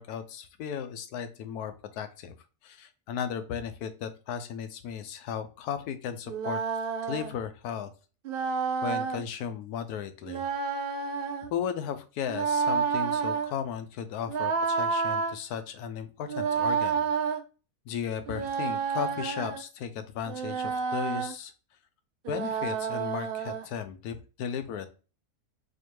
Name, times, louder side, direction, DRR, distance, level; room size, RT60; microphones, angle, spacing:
voice 1, 0.0-2.3 2.6-6.6 7.0-7.9 8.5-10.4 11.5-17.1 17.9-21.5 22.3-24.9, left 8 dB, 85° left, 10 dB, 1.1 m, -35 dB
sound 1, 6.3-7.3 8.2-9.2 10.3-11.5 12.3-13.5 14.3-15.3 16.3-17.4 18.3-19.6 20.3-21.3 22.2-23.7, right 6 dB, 80° right, 0.5 m, -29 dB
4.4 x 2.6 x 3.0 m, 0.34 s
omnidirectional pair, 1.6 m